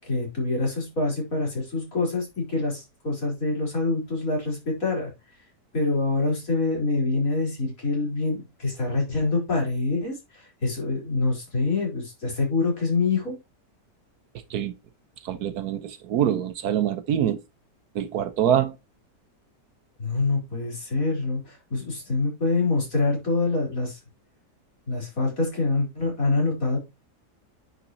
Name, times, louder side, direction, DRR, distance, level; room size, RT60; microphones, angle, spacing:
voice 1, 0.0-5.1 5.7-13.4 20.0-24.0 24.9-26.8, left 3 dB, 50° left, 4.9 m, -25 dB
voice 2, 15.2-17.4 17.9-18.8, right 10 dB, 70° right, 1.2 m, -25 dB
9.8 x 6.5 x 3.0 m
omnidirectional pair, 1.8 m